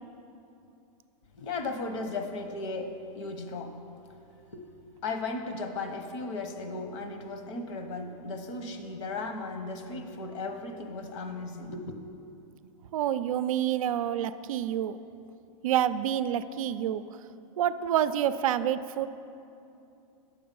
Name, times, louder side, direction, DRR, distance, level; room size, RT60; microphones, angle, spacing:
voice 1, 1.3-3.8 4.5-4.6 5.0-11.9, left 3 dB, 60° left, 6 dB, 1.1 m, -36 dB
voice 2, 12.9-15.0 15.6-17.0 17.6-19.1, right 10 dB, 75° right, 13 dB, 0.4 m, -28 dB
8.6 x 7.1 x 5.4 m, 2.7 s
hypercardioid pair, 145°, 18 cm